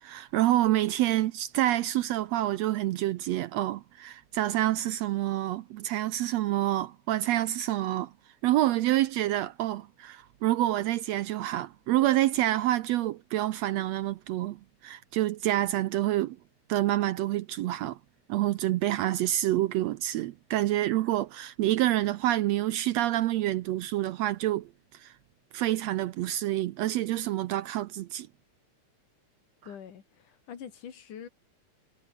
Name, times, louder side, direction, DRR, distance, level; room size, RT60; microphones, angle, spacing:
voice 1, 0.0-8.1 8.4-14.6 14.8-16.4 16.7-18.0 18.3-25.1 25.5-28.3, right 14 dB, 75° right, 1.6 m, -27 dB
voice 2, 29.7-31.3, left 8 dB, 85° left, 4.0 m, -44 dB
omnidirectional pair, 3.5 m